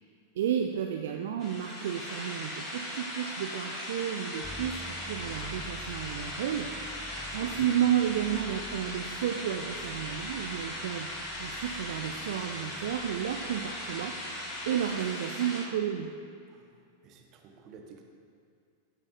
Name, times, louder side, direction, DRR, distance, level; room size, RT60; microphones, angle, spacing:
voice 1, 0.4-11.1 11.4-16.1, right 9 dB, 60° right, 4 dB, 0.5 m, -32 dB
sound 1, 1.4-15.6, left 1 dB, 30° left, 2.1 m, -38 dB
sound 2, 4.4-15.2, left 1 dB, 10° left, 0.4 m, -50 dB
voice 2, 7.1-7.6 16.5-16.7 17.0-18.0, right 5 dB, 35° right, 2 dB, 1.2 m, -52 dB
16.0 x 7.3 x 2.6 m, 2.3 s
figure-of-eight pair, 90°, 0 cm